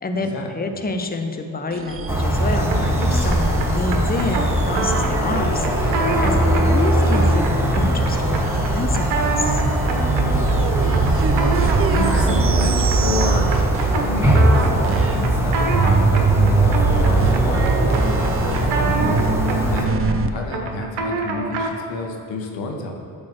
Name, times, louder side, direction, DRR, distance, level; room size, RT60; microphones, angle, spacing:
voice 1, 0.0-9.6 19.9-20.3, left 3 dB, 20° left, 6 dB, 0.7 m, -28 dB
sound 1, 1.7-14.0 14.2-20.3, right 4 dB, 30° right, 0.5 m, -25 dB
sound 2, 2.1-19.9, right 1 dB, 5° right, 1.2 m, -20 dB
sound 3, 2.7-21.9, right 3 dB, 70° right, 1.0 m, -28 dB
voice 2, 10.5-11.6 11.9-13.5 13.9-17.7 18.1-19.2 19.7-20.0 20.3-23.0, left 2 dB, 75° left, 2 dB, 1.2 m, -30 dB
8.4 x 3.1 x 6.4 m, 2.7 s
supercardioid pair, 60°, 45 cm